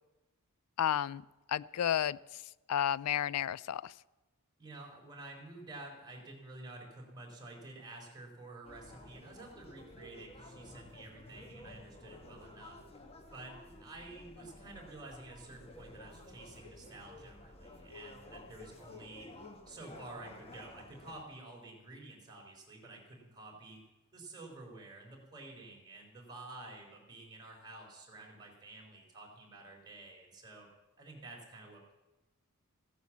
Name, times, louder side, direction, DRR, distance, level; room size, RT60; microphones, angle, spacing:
voice 1, 0.8-1.2 1.5-2.4 2.7-3.9, left 10 dB, 85° left, 20 dB, 0.4 m, -32 dB
voice 2, 4.6-12.8 13.3-19.3 19.7-23.8 24.1-30.7 31.0-31.9, right 2 dB, 20° right, -2 dB, 3.9 m, -50 dB
sound 1, 8.6-21.2, left 2 dB, 25° left, 1.4 m, -53 dB
16.0 x 9.4 x 7.2 m, 1.1 s
head